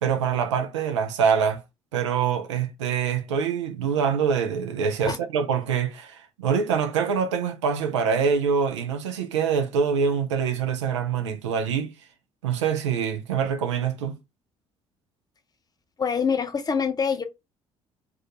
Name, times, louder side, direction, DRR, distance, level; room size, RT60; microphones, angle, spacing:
voice 1, 0.0-1.6 1.9-11.9 12.4-14.2, right 6 dB, 80° right, 0.4 m, -25 dB
voice 2, 16.0-17.2, left 6 dB, 25° left, 0.6 m, -25 dB
2.3 x 2.3 x 2.8 m
figure-of-eight pair, 50°, 15 cm